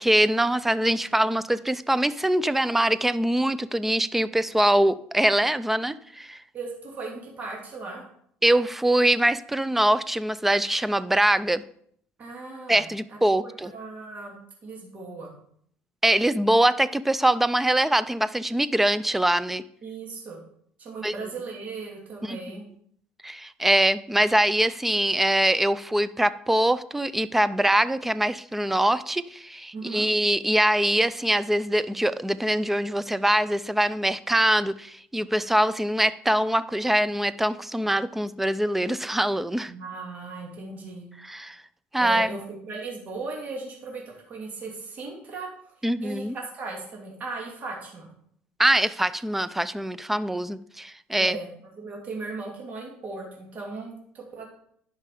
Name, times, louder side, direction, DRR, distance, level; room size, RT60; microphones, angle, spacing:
voice 1, 0.0-6.4 8.4-11.6 12.7-13.7 16.0-19.6 21.0-21.1 22.3-22.4 23.2-39.7 41.3-41.6 41.9-42.3 45.8-46.4 48.6-51.4, right 1 dB, 5° right, 16 dB, 0.4 m, -23 dB
voice 2, 6.5-8.0 12.2-12.8 13.1-14.4 14.6-15.3 19.8-20.4 20.8-22.6 29.7-30.1 39.7-41.1 42.0-45.7 46.0-48.1 51.2-51.5 51.7-54.4, right 3 dB, 40° right, -1 dB, 2.6 m, -37 dB
10.5 x 5.5 x 4.9 m, 0.66 s
cardioid pair, 120°, 4 cm